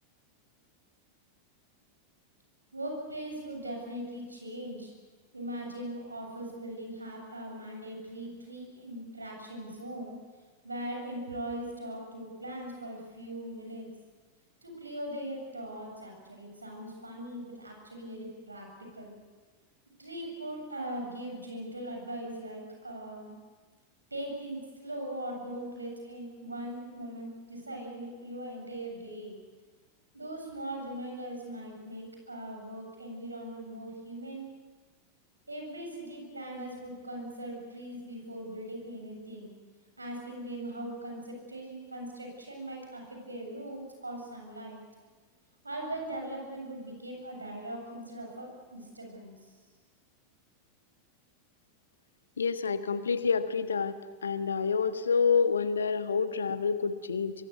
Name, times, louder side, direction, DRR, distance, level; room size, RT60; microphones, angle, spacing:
voice 1, 2.7-4.9 5.3-10.2 10.6-13.9 14.6-19.2 20.0-23.3 24.1-29.4 30.1-34.5 35.5-39.5 40.0-44.8 45.6-49.5, right 1 dB, 80° right, 2 dB, 7.7 m, -40 dB
voice 2, 52.4-54.0 54.2-57.3, left 5 dB, 70° left, 11 dB, 1.4 m, -28 dB
24.5 x 23.5 x 8.2 m, 1.4 s
figure-of-eight pair, 90°, 0 cm